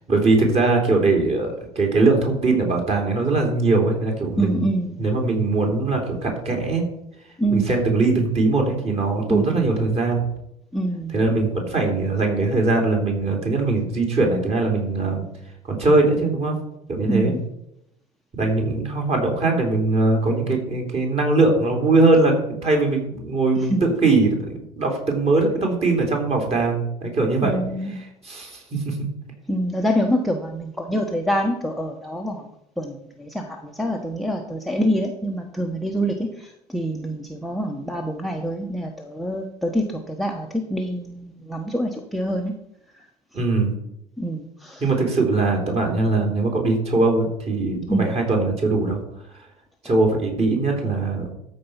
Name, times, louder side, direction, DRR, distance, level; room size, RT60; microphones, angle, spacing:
voice 1, 0.1-4.7 5.0-6.9 7.5-10.2 11.1-15.2 15.7-16.5 16.9-17.3 18.4-24.5 24.8-27.6 28.2-29.0 43.3-43.7 44.8-49.0 49.8-51.3, right 3 dB, 30° right, 2 dB, 3.4 m, -21 dB
voice 2, 4.4-5.0 7.4-7.7 9.3-9.5 10.7-11.2 17.1-17.4 23.6-23.9 27.4-28.0 29.5-32.4 32.8-42.5 44.2-44.8 47.9-48.1, right 1 dB, ahead, 4 dB, 1.1 m, -25 dB
13.0 x 4.7 x 5.7 m, 0.80 s
figure-of-eight pair, 65°, 20 cm